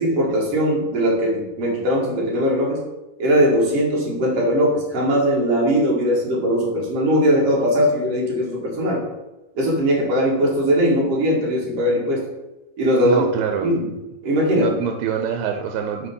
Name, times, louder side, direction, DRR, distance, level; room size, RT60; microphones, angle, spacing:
voice 1, 0.0-2.8 3.2-9.0 9.6-12.2 12.8-13.3 13.6-13.9 14.2-14.8, equal, 50° right, -3 dB, 2.6 m, -20 dB
voice 2, 13.1-13.7 14.5-16.1, right 8 dB, 85° right, 4 dB, 2.3 m, -25 dB
6.6 x 4.4 x 5.3 m, 1.0 s
omnidirectional pair, 4.0 m